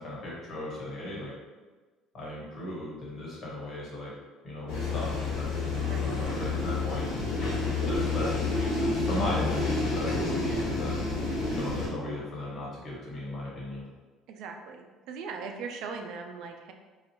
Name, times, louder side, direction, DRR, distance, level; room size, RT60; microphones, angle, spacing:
voice 1, 0.0-1.3 2.1-4.1 4.4-7.1 7.8-11.0 11.5-13.8, left 1 dB, 40° left, -5 dB, 1.2 m, -36 dB
sound 1, 4.7-11.9, left 3 dB, 75° left, 1.0 m, -29 dB
voice 2, 14.3-16.7, right 5 dB, 70° right, 4 dB, 0.3 m, -39 dB
2.6 x 2.3 x 2.9 m, 1.3 s
cardioid pair, 115°, 0 cm